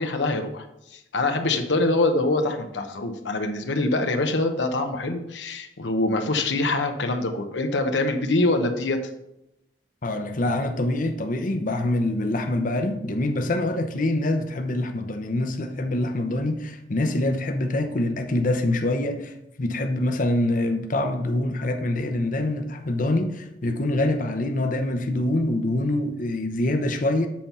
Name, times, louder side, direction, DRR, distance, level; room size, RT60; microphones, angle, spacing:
voice 1, 0.0-9.0, left 2 dB, 85° left, 0.8 m, -24 dB
voice 2, 10.0-27.3, left 1 dB, 50° left, 0.7 m, -25 dB
7.5 x 4.4 x 5.4 m
head